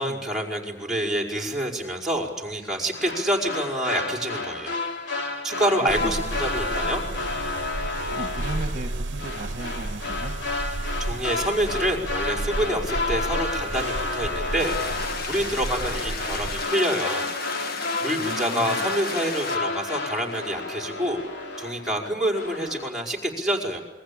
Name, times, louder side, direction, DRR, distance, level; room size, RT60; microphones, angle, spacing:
voice 1, 0.0-4.8 5.4-7.0 11.0-17.3 17.6-17.7 18.0-21.2 21.6-23.8, equal, ahead, 0 dB, 5.2 m, -27 dB
sound 1, 2.9-22.0 22.3-22.9, left 3 dB, 85° left, 2.9 m, -31 dB
voice 2, 5.8-6.3 8.1-10.3 18.2-18.9, right 2 dB, 45° right, 6 dB, 1.6 m, -36 dB
sound 2, 5.9-16.7, right 2 dB, 85° right, 0.8 m, -33 dB
sound 3, 14.6-19.6, left 4 dB, 55° left, 1.7 m, -33 dB
28.0 x 22.0 x 8.8 m, 1.0 s
head